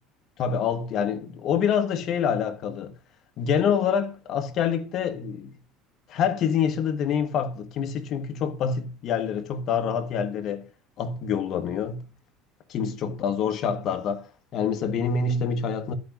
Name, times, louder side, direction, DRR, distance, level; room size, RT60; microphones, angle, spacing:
voice 1, 0.4-2.9 3.4-5.6 6.1-10.6 11.0-12.1 12.7-14.3 14.5-15.9, left 7 dB, 40° left, 1.4 m, -26 dB
11.5 x 5.3 x 6.0 m
cardioid pair, 160°, 0 cm